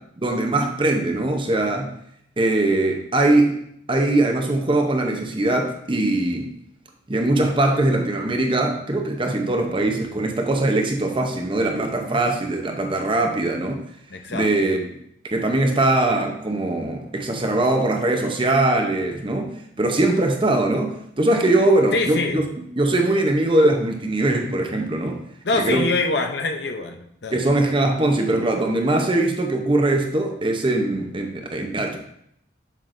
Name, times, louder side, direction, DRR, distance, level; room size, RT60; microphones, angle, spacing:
voice 1, 0.2-1.9 2.4-3.6 3.9-6.5 7.1-13.8 14.3-14.9 15.3-19.5 19.8-22.4 22.8-25.2 25.6-25.9 27.3-32.0, right 2 dB, 25° right, 3 dB, 0.7 m, -21 dB
voice 2, 14.1-14.5 21.9-22.5 25.4-27.4, left 3 dB, 60° left, 5 dB, 0.7 m, -24 dB
7.4 x 6.4 x 2.6 m, 0.73 s
head